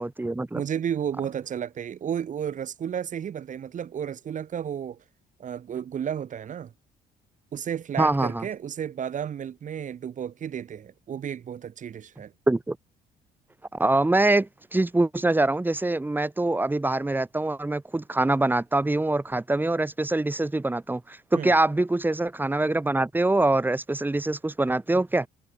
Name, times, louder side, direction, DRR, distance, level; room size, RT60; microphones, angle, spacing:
voice 1, 0.0-0.6 8.0-8.4 12.5-12.8 13.7-25.3, right 2 dB, 10° right, 8.0 m, -24 dB
voice 2, 0.5-5.0 5.4-6.7 7.5-12.3 21.3-21.5, right 8 dB, 50° right, 6.5 m, -32 dB
cardioid pair, 110°, 17 cm